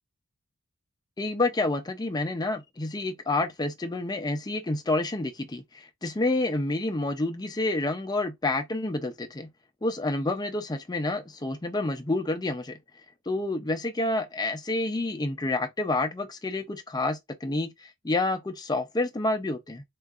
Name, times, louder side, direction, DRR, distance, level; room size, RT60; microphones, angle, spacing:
voice 1, 1.2-9.5 9.8-12.7 13.3-19.8, left 2 dB, 20° left, 0.5 m, -29 dB
3.6 x 2.4 x 2.4 m
head